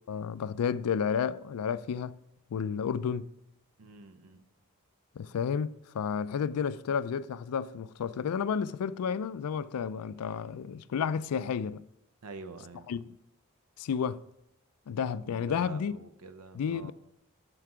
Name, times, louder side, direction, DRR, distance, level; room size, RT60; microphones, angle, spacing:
voice 1, 0.1-2.1 2.5-3.3 5.2-11.8 12.9-13.0 13.8-14.2 14.9-15.9 16.5-16.9, left 7 dB, 85° left, 0.4 m, -31 dB
voice 2, 3.8-4.4 12.2-12.9 15.1-16.9, right 3 dB, 85° right, 0.6 m, -47 dB
7.8 x 5.9 x 4.8 m
head